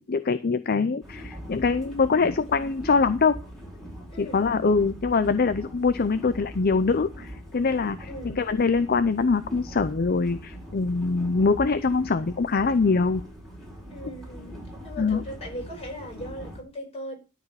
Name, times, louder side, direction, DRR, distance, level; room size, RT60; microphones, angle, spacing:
voice 1, 0.0-3.4 4.2-13.2 15.0-15.2, left 4 dB, 45° left, 0.6 m, -23 dB
sound 1, 1.0-16.6, equal, ahead, 4.3 m, -41 dB
voice 2, 8.1-8.4 13.9-14.6 14.8-17.2, equal, 30° left, 5.5 m, -38 dB
13.0 x 4.9 x 7.0 m
head